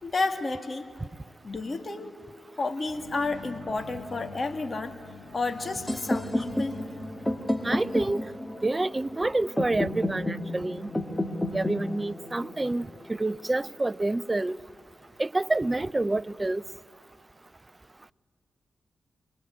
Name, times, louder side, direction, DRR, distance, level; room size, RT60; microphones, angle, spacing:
voice 1, 0.0-0.9 1.4-2.1 2.6-5.0 5.3-6.8, left 3 dB, 40° left, 2.4 m, -31 dB
sound 1, 2.9-10.7, left 4 dB, 80° left, 2.2 m, -47 dB
sound 2, 5.9-13.8, left 1 dB, 15° left, 2.0 m, -32 dB
voice 2, 7.6-8.2 8.6-10.9 11.5-14.6 15.2-16.6, right 2 dB, 25° right, 0.6 m, -28 dB
26.5 x 20.5 x 9.5 m
cardioid pair, 65°, 0 cm